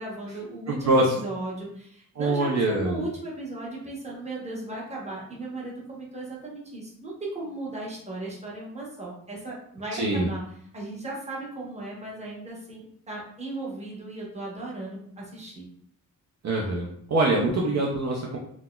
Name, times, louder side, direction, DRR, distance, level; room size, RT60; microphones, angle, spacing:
voice 1, 0.0-10.4 10.7-15.7, right 2 dB, 20° right, -5 dB, 0.8 m, -36 dB
voice 2, 0.7-1.1 2.2-3.1 9.9-10.3 16.4-18.4, right 2 dB, 50° right, -3 dB, 0.5 m, -24 dB
4.0 x 2.0 x 2.2 m, 0.68 s
wide cardioid pair, 150°, 36 cm